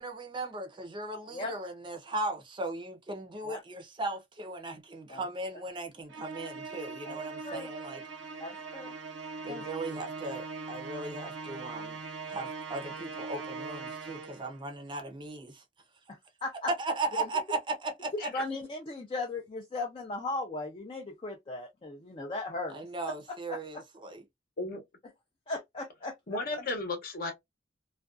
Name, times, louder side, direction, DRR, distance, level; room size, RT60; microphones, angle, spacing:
voice 1, 0.0-8.0 9.4-12.0 12.3-15.6 16.8-18.1 22.7-24.2, right 2 dB, 25° right, 0.5 m, -37 dB
voice 2, 1.3-1.6 3.4-3.6 5.1-5.3 7.0-7.7 8.4-8.9 9.5-9.7 16.1-16.7 17.2-17.4 18.1-22.8 23.3-23.8 25.5-26.1, left 2 dB, 30° left, 0.4 m, -37 dB
Musical instrument, 6.1-14.6, right 4 dB, 75° right, 0.5 m, -41 dB
voice 3, 26.3-27.3, left 2 dB, 55° left, 0.8 m, -34 dB
2.4 x 2.2 x 2.3 m
head